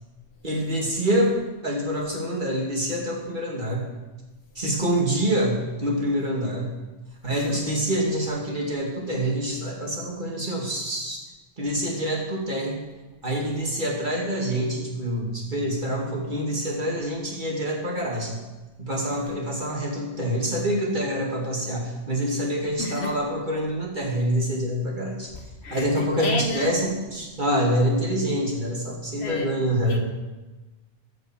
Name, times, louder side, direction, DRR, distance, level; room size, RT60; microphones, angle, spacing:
voice 1, 0.4-1.3 1.6-3.8 4.6-6.7 7.2-11.2 11.6-12.8 13.2-18.4 18.8-25.3 25.7-30.0, equal, 45° right, -2 dB, 2.5 m, -26 dB
voice 2, 7.3-7.6 22.8-23.2 25.6-25.8 26.2-26.7 29.2-29.5 29.9-30.0, left 2 dB, 65° left, 5 dB, 1.3 m, -30 dB
13.5 x 5.5 x 7.4 m, 1.2 s
omnidirectional pair, 1.2 m